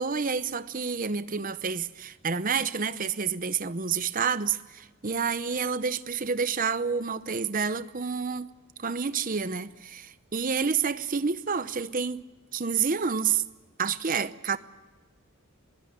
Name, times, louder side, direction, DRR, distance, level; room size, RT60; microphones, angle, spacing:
voice 1, 0.0-8.5 8.8-12.2 12.5-13.4 13.8-14.6, right 6 dB, 40° right, 0.7 m, -29 dB
22.0 x 16.5 x 9.5 m
head